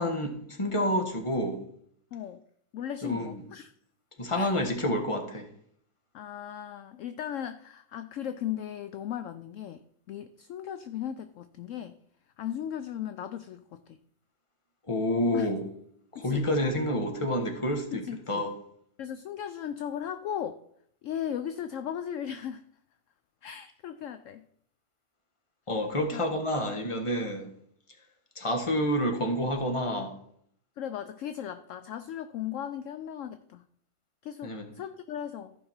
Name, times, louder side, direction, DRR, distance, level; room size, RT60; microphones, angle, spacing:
voice 1, 0.0-1.6 3.0-3.4 4.2-5.5 14.9-15.6 16.1-18.5 25.7-27.5 28.3-30.2 34.4-34.7, left 1 dB, 20° left, 4 dB, 1.3 m, -29 dB
voice 2, 2.1-2.4 2.7-3.7 4.3-4.5 6.1-12.0 12.4-13.8 15.3-15.5 16.1-16.5 17.9-18.5 19.0-20.6 21.0-22.7 23.4-24.5 26.1-26.2 30.8-33.7 34.2-35.6, left 9 dB, 70° left, 11 dB, 0.7 m, -37 dB
14.5 x 5.3 x 4.4 m, 0.66 s
omnidirectional pair, 1.8 m